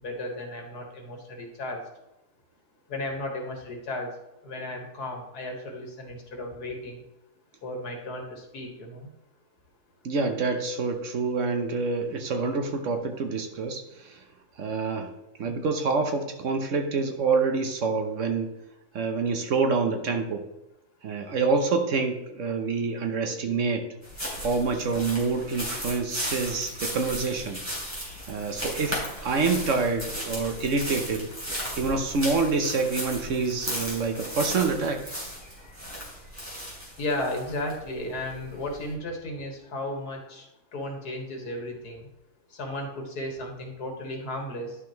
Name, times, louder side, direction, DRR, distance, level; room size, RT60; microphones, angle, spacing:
voice 1, 0.0-1.8 2.9-4.1 4.4-7.0 7.6-9.1 37.0-40.5 40.7-42.1 42.5-44.8, left 1 dB, 85° left, 2 dB, 2.1 m, -34 dB
voice 2, 10.0-14.2 14.6-15.1 15.4-18.5 18.9-20.4 21.0-23.8 24.4-27.6 28.3-31.3 31.7-35.0, right 4 dB, 60° right, 5 dB, 1.1 m, -27 dB
sound 1, 24.0-38.9, equal, 10° right, 3.2 m, -36 dB
11.0 x 5.9 x 3.0 m, 0.92 s
omnidirectional pair, 1.6 m